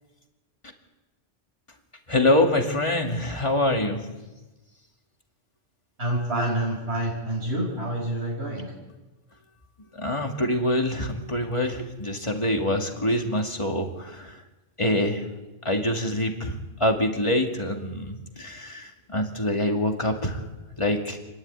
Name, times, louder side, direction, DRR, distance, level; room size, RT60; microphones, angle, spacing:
voice 1, 2.1-4.1 9.9-14.4 14.8-15.2 15.6-16.5 16.8-20.4 20.8-21.2, left 1 dB, 30° left, 2 dB, 2.5 m, -25 dB
voice 2, 6.0-8.7, right 1 dB, 90° right, -4 dB, 6.2 m, -27 dB
29.0 x 11.5 x 9.7 m, 1.1 s
omnidirectional pair, 1.1 m